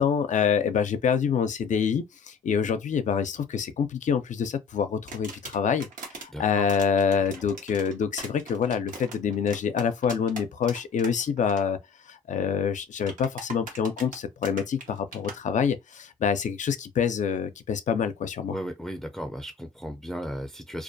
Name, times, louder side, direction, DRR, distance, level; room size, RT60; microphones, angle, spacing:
voice 1, 0.0-5.9 6.1-11.8 12.1-18.6, left 7 dB, 65° left, 0.5 m, -26 dB
sound 1, 5.1-6.3 6.7-11.1 11.4-11.6 13.0-15.4, right 3 dB, 85° right, 0.9 m, -41 dB
voice 2, 6.3-6.7 18.5-20.8, equal, 5° left, 0.5 m, -35 dB
2.4 x 2.2 x 2.6 m
cardioid pair, 50°, 13 cm